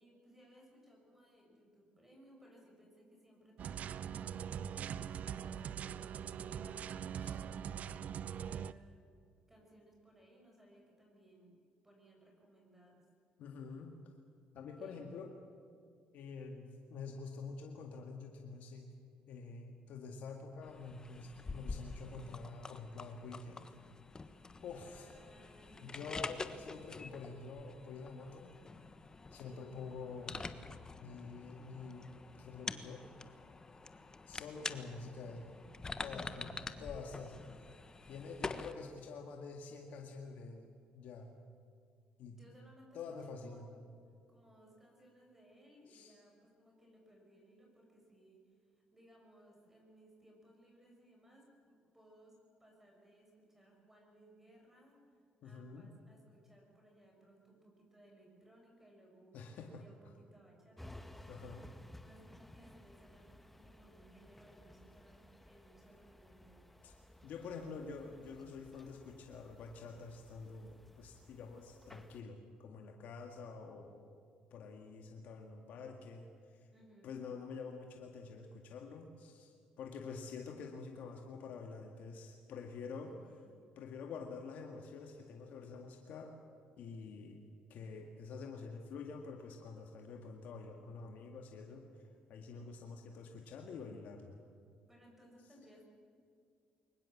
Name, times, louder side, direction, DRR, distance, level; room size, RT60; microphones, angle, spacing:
voice 1, 0.0-6.1 6.3-9.0 9.5-11.6 11.8-13.1 14.8-15.0 24.8-25.9 29.3-29.8 36.3-37.4 42.3-43.7 44.3-61.4 62.0-66.7 76.7-77.2 83.0-83.6 94.9-95.8, right 1 dB, 10° right, 0 dB, 6.9 m, -63 dB
sound 1, 3.6-8.7, right 8 dB, 60° right, 0.6 m, -42 dB
voice 2, 13.4-13.9 14.5-15.4 16.1-18.9 19.3-23.6 24.6-25.1 25.8-28.5 29.3-30.4 31.0-32.1 32.4-33.0 34.3-35.5 36.0-36.5 36.8-37.3 38.1-40.7 40.9-41.3 42.2-42.4 42.9-43.7 45.9-46.1 55.4-55.9 59.3-59.8 61.3-61.7 66.8-66.9 67.2-74.2 74.5-76.7 77.0-83.3 83.8-86.3 86.8-87.4 87.7-94.4, left 4 dB, 70° left, 3 dB, 1.9 m, -47 dB
sound 2, 20.6-38.7, left 3 dB, 25° left, 1.3 m, -47 dB
sound 3, 60.8-72.2, left 1 dB, 5° left, 1.3 m, -57 dB
22.5 x 20.0 x 7.3 m, 2.3 s
cardioid pair, 85°, 3 cm